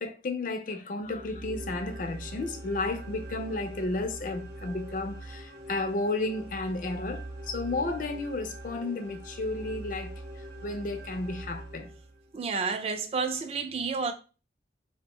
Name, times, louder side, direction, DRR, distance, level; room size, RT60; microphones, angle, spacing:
voice 1, 0.0-10.1 10.6-11.9, left 2 dB, 45° left, 0.4 m, -33 dB
sound 1, 1.0-12.4, right 1 dB, 70° right, 0.8 m, -42 dB
voice 2, 12.3-14.1, right 5 dB, 35° right, 0.3 m, -30 dB
2.5 x 2.1 x 2.9 m
head